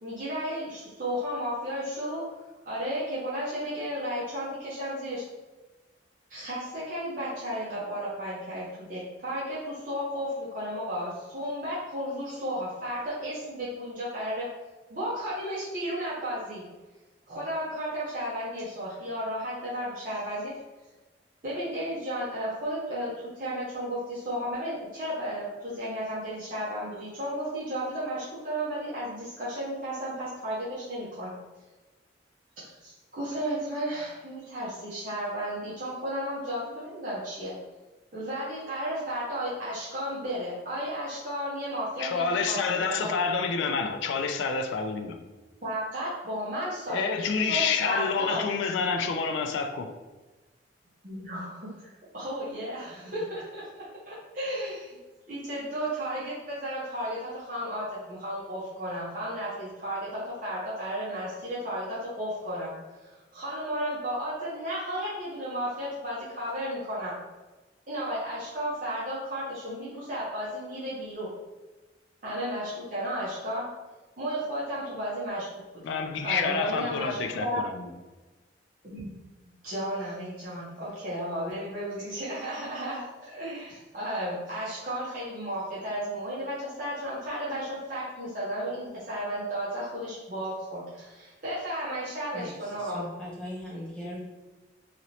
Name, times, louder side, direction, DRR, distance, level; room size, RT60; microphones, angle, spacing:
voice 1, 0.0-2.4 2.7-5.2 6.3-14.5 14.9-16.6 17.3-20.5 21.4-31.3 32.8-37.5 38.1-43.1 45.6-48.4 51.0-55.0 55.3-62.7 63.0-67.1 67.9-71.3 72.2-73.7 74.2-75.5 75.7-75.8 76.2-77.6 78.8-79.1 79.6-93.1, equal, 45° right, -9 dB, 0.8 m, -33 dB
voice 2, 42.0-45.3 46.9-49.9 75.8-77.9, left 5 dB, 75° left, 5 dB, 0.3 m, -28 dB
voice 3, 92.8-94.2, left 1 dB, 5° left, -5 dB, 0.7 m, -38 dB
2.9 x 2.9 x 2.7 m, 1.2 s
head